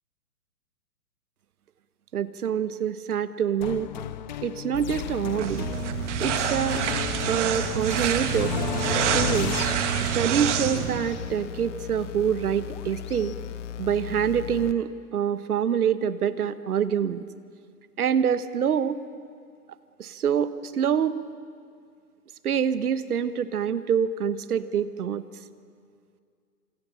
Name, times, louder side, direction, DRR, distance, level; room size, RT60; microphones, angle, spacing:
voice 1, 2.1-3.9 4.4-5.7 6.2-6.9 7.3-8.6 9.1-9.5 10.0-13.3 13.8-17.2 18.0-19.0 20.0-21.2 22.4-25.2, right 8 dB, 65° right, 14 dB, 1.3 m, -26 dB
sound 1, 3.6-13.3, left 11 dB, 30° left, 0.6 m, -35 dB
sound 2, 4.7-14.7, left 10 dB, 50° left, 1.2 m, -38 dB
sound 3, 5.4-11.0, right 9 dB, 45° right, 1.8 m, -27 dB
29.5 x 27.0 x 5.8 m, 2.3 s
hypercardioid pair, 130°, 48 cm